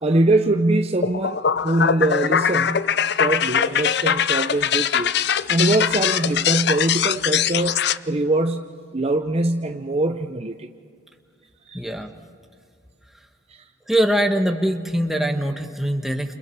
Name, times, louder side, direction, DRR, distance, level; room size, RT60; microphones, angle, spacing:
voice 1, 0.0-2.8 3.2-5.1 5.5-10.7 11.7-11.8 13.5-13.6, right 2 dB, 30° right, 6 dB, 0.7 m, -22 dB
sound 1, 1.0-8.0, left 8 dB, 60° left, 0.5 m, -22 dB
voice 2, 11.7-12.1 13.9-16.3, right 1 dB, ahead, 3 dB, 1.3 m, -22 dB
29.0 x 29.0 x 4.6 m, 2.2 s
head